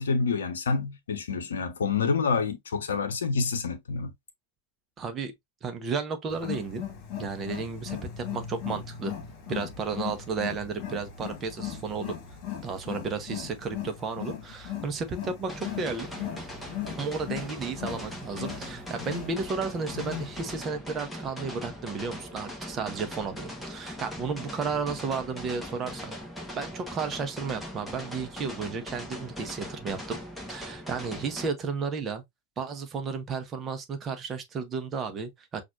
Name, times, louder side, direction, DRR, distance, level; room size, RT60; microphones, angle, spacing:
voice 1, 0.0-4.1, left 5 dB, 65° left, 0.8 m, -28 dB
voice 2, 5.0-5.3 5.6-6.8 7.2-9.1 9.5-12.2 12.6-16.1 17.0-26.1 26.5-30.2 30.5-32.2 32.6-35.6, right 5 dB, 25° right, 0.9 m, -33 dB
Wild animals, 6.3-20.6, left 10 dB, 40° left, 1.7 m, -38 dB
sound 1, 15.5-31.5, equal, 5° left, 1.2 m, -40 dB
6.0 x 2.5 x 2.5 m
figure-of-eight pair, 90°, 0 cm